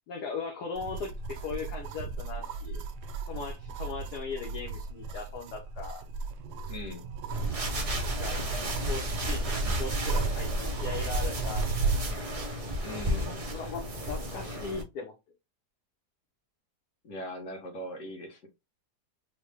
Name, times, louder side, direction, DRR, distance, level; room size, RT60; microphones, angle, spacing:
voice 1, 0.1-2.8 3.3-6.1 8.0-8.4 8.8-11.9 13.5-15.1, left 5 dB, 75° left, 1.3 m, -39 dB
sound 1, 0.8-12.1, right 4 dB, 90° right, 1.2 m, -35 dB
voice 2, 6.7-7.1 12.8-13.5 17.0-18.5, left 1 dB, 55° left, 1.2 m, -40 dB
sound 2, 7.3-14.8, equal, 55° right, 0.4 m, -33 dB
3.7 x 2.1 x 3.3 m
omnidirectional pair, 1.8 m